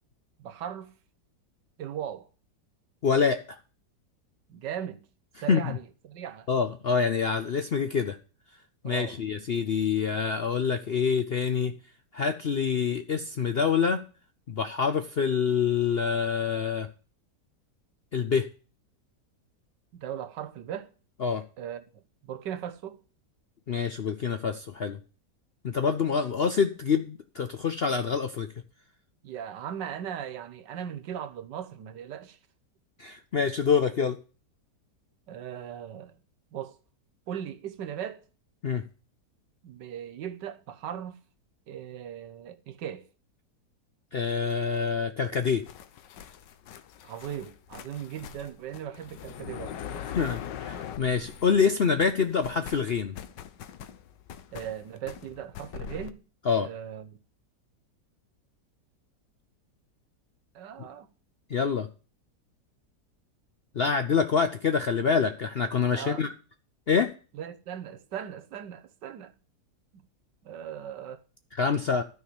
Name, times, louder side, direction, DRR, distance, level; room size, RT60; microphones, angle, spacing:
voice 1, 0.4-0.9 1.8-2.3 4.5-5.0 5.4-6.5 8.8-9.2 19.9-20.9 21.6-23.0 29.2-32.4 35.3-36.2 36.5-36.8 37.3-38.2 39.6-41.2 41.7-43.1 47.0-50.3 54.5-56.2 56.6-57.2 60.5-61.1 65.9-66.3 67.3-69.3 69.9-70.0 70.4-71.2, right 9 dB, 90° right, 1.6 m, -38 dB
voice 2, 3.0-3.6 5.5-5.8 6.5-8.2 8.8-11.7 12.1-14.0 14.5-16.9 18.1-18.5 21.2-21.4 23.7-25.0 25.6-28.5 33.0-34.2 38.6-38.8 44.1-45.6 50.2-53.2 56.5-56.7 61.5-61.9 63.8-66.3 66.9-67.1 71.6-72.0, left 6 dB, 65° left, 0.6 m, -26 dB
sound 1, 45.3-51.7 52.0-56.1, left 8 dB, 90° left, 1.5 m, -42 dB
12.5 x 4.8 x 8.5 m
omnidirectional pair, 1.8 m